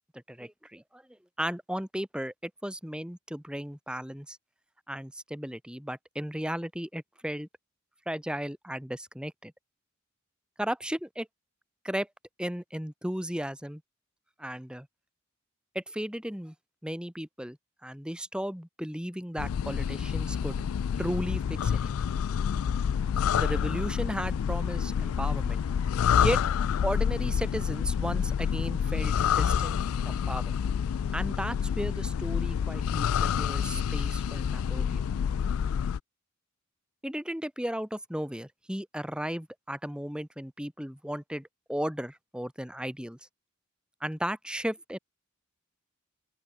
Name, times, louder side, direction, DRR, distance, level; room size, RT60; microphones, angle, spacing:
voice 1, 0.1-1.0 1.4-4.4 4.9-7.5 8.0-9.5 10.6-11.3 11.8-12.1 12.4-13.8 14.4-14.9 15.7-16.5 16.8-17.6 17.8-20.6 21.0-21.9 23.3-25.6 26.2-26.4 26.8-29.8 30.0-30.6 31.1-35.0 37.0-43.2 44.0-45.0, equal, 5° right, 1.6 m, -35 dB
sound 1, 19.4-36.0, left 7 dB, 85° left, 0.4 m, -28 dB
open air
head